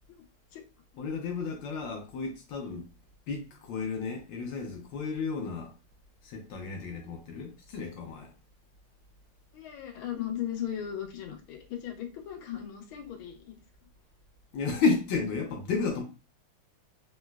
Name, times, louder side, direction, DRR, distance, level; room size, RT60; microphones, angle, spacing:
voice 1, 1.0-2.9 3.3-5.7 6.2-8.3 14.5-16.0, left 4 dB, 75° left, 1.2 m, -32 dB
voice 2, 9.5-13.6, left 10 dB, 90° left, 1.5 m, -37 dB
3.8 x 2.0 x 2.2 m
omnidirectional pair, 2.3 m